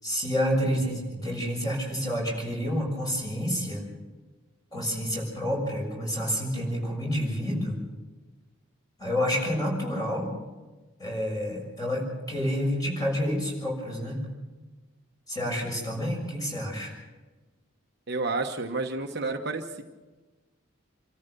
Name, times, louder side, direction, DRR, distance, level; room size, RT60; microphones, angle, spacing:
voice 1, 0.0-3.8 4.7-7.8 9.0-10.3 11.0-14.2 15.3-16.9, equal, 15° left, -1 dB, 6.6 m, -29 dB
voice 2, 18.1-19.8, right 3 dB, 50° right, 4 dB, 1.1 m, -30 dB
27.5 x 14.0 x 6.9 m, 1.2 s
head